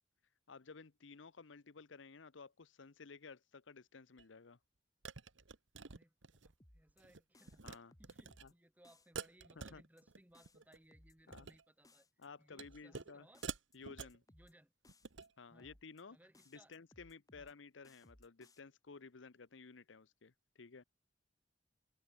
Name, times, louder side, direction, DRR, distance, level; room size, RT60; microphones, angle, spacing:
voice 1, 0.5-4.6 7.6-7.9 8.4-8.5 9.6-9.8 11.3-11.5 12.2-13.3 13.7-14.2 15.4-16.2 16.5-20.8, left 4 dB, 90° left, 0.8 m, -55 dB
sound 1, 4.2-4.3 5.0-6.5 6.9-7.2 7.5-7.8 8.0-8.4 9.1-10.2 10.4-10.8 11.2-11.6 12.6-13.1 13.4-14.2 14.9-15.3, right 5 dB, 85° right, 1.3 m, -48 dB
voice 2, 5.9-7.6 8.0-12.1 12.4-13.4 14.3-14.7 15.5-15.8 16.1-16.7 17.4-17.5, right 1 dB, 10° right, 2.5 m, -66 dB
sound 2, 6.6-7.0 7.3-8.5 8.8-9.3 9.6-10.0 10.3-11.5 11.8-12.3 12.6-13.0 13.3-14.5 14.8-15.3 15.6-16.0 16.3-17.5 17.8-18.6, left 1 dB, 20° left, 3.0 m, -65 dB
open air
head